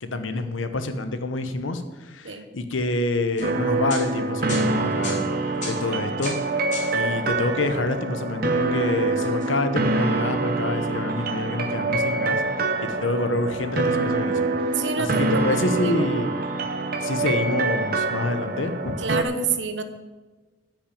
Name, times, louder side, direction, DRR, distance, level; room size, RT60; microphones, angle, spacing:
voice 1, 0.0-5.3 5.6-6.4 6.9-14.5 15.0-16.3 17.0-19.0, left 2 dB, 90° left, 9 dB, 1.0 m, -27 dB
sound 1, 3.4-7.1 7.3-7.4 9.2-10.3 10.8-11.3 12.3-12.9 13.4-13.5 13.8-14.0 14.7-15.1, left 2 dB, 40° left, 3.7 m, -39 dB
sound 2, 3.4-19.2, right 3 dB, 50° right, 0.8 m, -25 dB
voice 2, 14.8-16.1 19.0-19.8, right 5 dB, 70° right, 8 dB, 1.0 m, -28 dB
10.0 x 6.2 x 8.5 m, 1.2 s
head